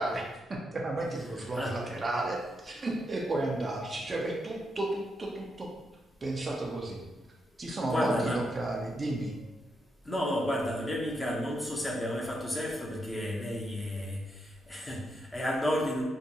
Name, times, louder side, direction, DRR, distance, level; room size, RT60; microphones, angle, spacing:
voice 1, 0.0-5.7 6.2-7.0 7.6-9.4, right 2 dB, 30° right, -1 dB, 0.4 m, -33 dB
voice 2, 7.9-8.4 10.0-16.0, left 1 dB, 20° left, -2 dB, 0.6 m, -32 dB
2.7 x 2.2 x 2.7 m, 1.0 s
cardioid pair, 90°, 0 cm